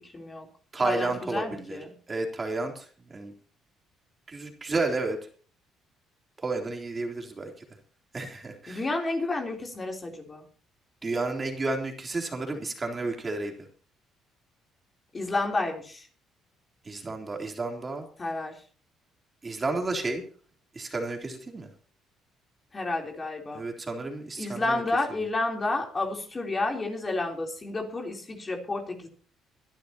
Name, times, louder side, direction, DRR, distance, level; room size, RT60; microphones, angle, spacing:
voice 1, 0.1-0.5 0.8-1.9 8.7-10.4 15.1-16.1 18.2-18.5 22.7-23.6 24.4-29.1, left 2 dB, 25° left, 2 dB, 3.7 m, -30 dB
voice 2, 0.7-1.8 2.1-2.9 3.1-3.3 4.3-5.2 6.4-7.5 8.1-8.9 11.0-13.5 16.9-18.1 19.4-20.2 20.8-21.7 23.5-24.8, right 3 dB, 25° right, 2 dB, 3.5 m, -31 dB
23.5 x 12.0 x 3.0 m, 0.40 s
cardioid pair, 105°, 0 cm